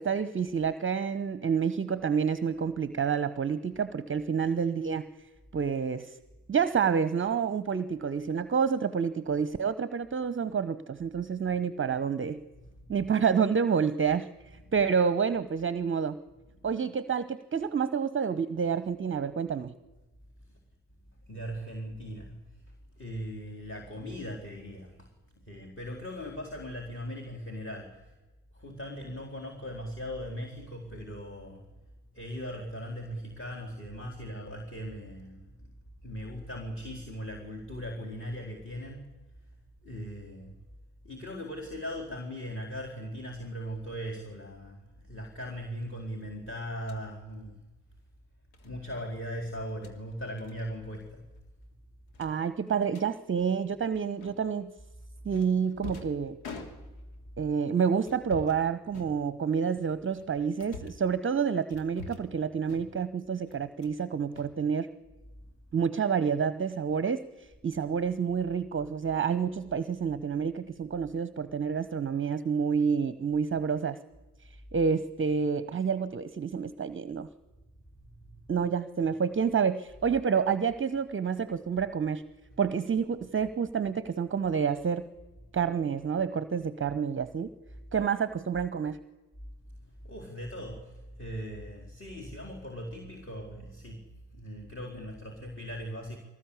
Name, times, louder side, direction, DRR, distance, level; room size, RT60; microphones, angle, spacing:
voice 1, 0.0-5.1 5.5-6.2 6.5-12.4 12.9-16.2 16.6-19.7 52.2-54.7 55.2-56.4 57.4-64.9 65.7-74.0 74.7-77.3 78.5-82.2 82.6-85.0 85.5-87.5 87.9-89.0, right 6 dB, 25° right, 14 dB, 1.0 m, -28 dB
voice 2, 12.5-13.1 14.5-14.9 16.5-16.7 20.5-20.6 21.3-22.3 23.0-25.1 25.5-28.1 28.5-31.6 32.1-35.5 36.0-39.1 39.8-40.5 41.0-47.6 48.6-51.2 82.5-82.7 90.0-94.0 94.3-96.2, equal, 25° left, 0 dB, 4.4 m, -39 dB
sound 1, 46.8-47.0 48.5-48.7 49.6-50.0 50.4-50.6 50.9-51.1 51.4-51.5 52.1-53.1 54.2-54.6 55.3-57.2 58.0-58.6 58.9-59.6 60.1-61.1 61.7-62.4 62.6-63.1 63.5-64.0 64.3-65.1, left 3 dB, 70° left, 2.9 m, -46 dB
23.5 x 19.0 x 8.5 m, 1.1 s
figure-of-eight pair, 45°, 47 cm